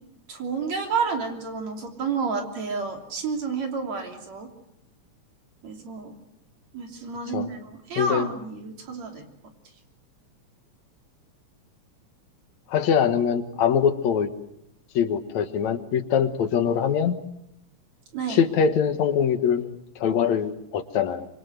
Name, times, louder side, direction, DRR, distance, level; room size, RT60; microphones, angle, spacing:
voice 1, 0.3-4.5 5.6-6.1 6.7-9.2 18.1-18.4, right 5 dB, 65° right, 3 dB, 4.4 m, -30 dB
voice 2, 8.0-8.3 12.7-14.3 14.9-17.2 18.3-19.7 20.0-21.3, left 7 dB, 70° left, 10 dB, 2.6 m, -23 dB
26.0 x 24.0 x 8.0 m, 0.80 s
omnidirectional pair, 3.3 m